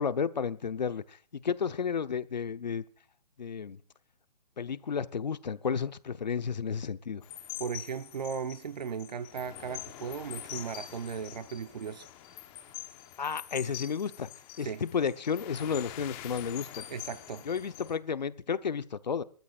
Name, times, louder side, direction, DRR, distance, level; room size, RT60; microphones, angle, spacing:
voice 1, 0.0-2.8 3.4-3.8 4.6-7.2 13.2-14.3 14.6-16.8 17.4-19.2, left 6 dB, 90° left, 1.0 m, -32 dB
sound 1, 7.2-18.0, left 13 dB, 20° left, 1.1 m, -45 dB
voice 2, 7.6-12.1 14.6-14.8 16.9-17.5, right 6 dB, 80° right, 1.0 m, -37 dB
29.0 x 13.5 x 2.5 m
hypercardioid pair, 160°, 21 cm